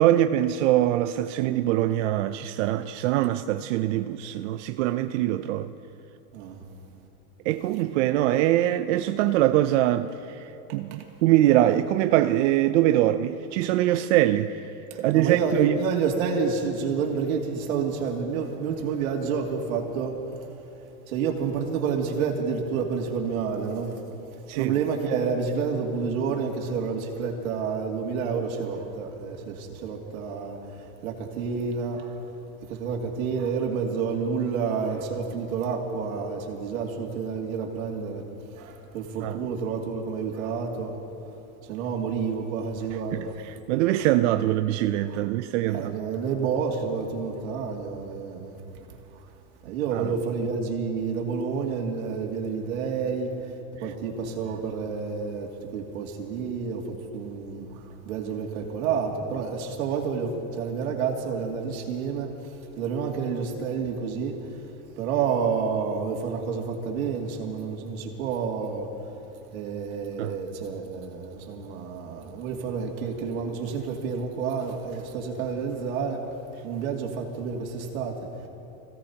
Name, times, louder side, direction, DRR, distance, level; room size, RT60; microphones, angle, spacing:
voice 1, 0.0-5.7 7.4-15.8 24.5-24.7 39.2-39.4 43.1-45.9 49.9-50.1 53.8-53.9 70.2-70.3, right 13 dB, 60° right, 0.6 m, -23 dB
voice 2, 14.9-20.2 21.1-23.9 24.6-30.6 31.0-32.2 32.6-38.2 38.6-40.9 41.6-43.4 45.1-45.2 45.7-48.6 49.6-53.5 53.8-64.4 65.0-68.9 69.5-76.2 76.6-78.2 78.4-78.5, right 5 dB, 80° right, 2.5 m, -29 dB
25.5 x 16.5 x 2.9 m
supercardioid pair, 145°, 41 cm